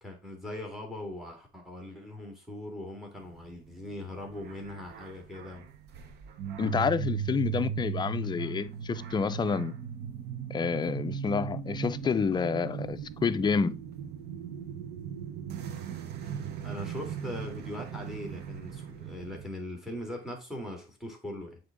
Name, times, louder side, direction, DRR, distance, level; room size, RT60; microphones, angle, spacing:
voice 1, 0.0-5.7 8.2-8.3 16.6-21.6, left 1 dB, ahead, 2.2 m, -40 dB
sound 1, 3.2-19.5, right 8 dB, 80° right, 1.0 m, -38 dB
voice 2, 6.6-9.7 10.5-13.8, left 5 dB, 25° left, 0.5 m, -29 dB
7.7 x 3.5 x 3.7 m
cardioid pair, 110°, 17 cm